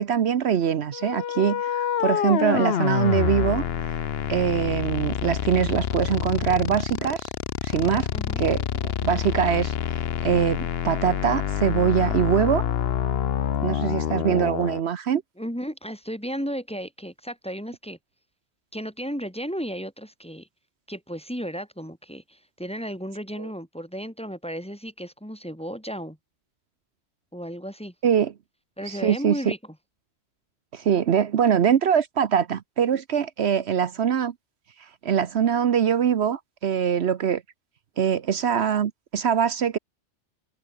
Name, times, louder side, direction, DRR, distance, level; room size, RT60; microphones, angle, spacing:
voice 1, 0.0-3.6 4.3-7.3 7.6-8.1 8.4-12.6 13.6-15.2 23.4-23.5 28.0-28.3 28.9-29.4 30.7-34.3 35.0-37.4 38.0-39.8, right 8 dB, 70° right, 1.1 m, -23 dB
sound 1, 0.9-14.8, left 9 dB, 65° left, 1.0 m, -27 dB
voice 2, 8.1-8.5 15.4-18.0 18.7-20.5 20.9-26.2 27.3-27.9 28.8-29.6, equal, 5° left, 2.0 m, -34 dB
omnidirectional pair, 1.2 m